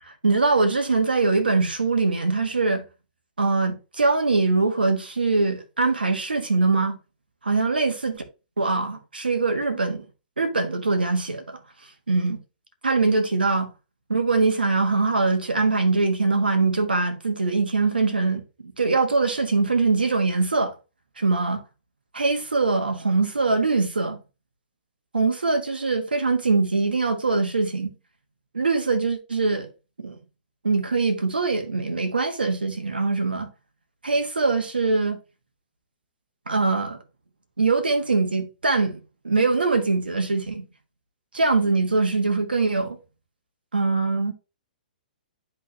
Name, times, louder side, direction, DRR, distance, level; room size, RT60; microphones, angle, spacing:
voice 1, 0.2-2.8 3.4-7.0 7.4-8.2 8.6-10.0 10.4-11.6 12.1-12.4 12.8-13.7 14.1-20.7 21.2-21.6 22.1-24.2 25.1-27.9 28.5-29.7 30.0-30.2 30.6-33.5 34.0-35.2 36.5-37.0 37.6-40.6 41.3-43.0 43.7-44.3, right 3 dB, 85° right, 1.6 m, -22 dB
11.0 x 3.8 x 2.8 m
hypercardioid pair, 120°, 5 cm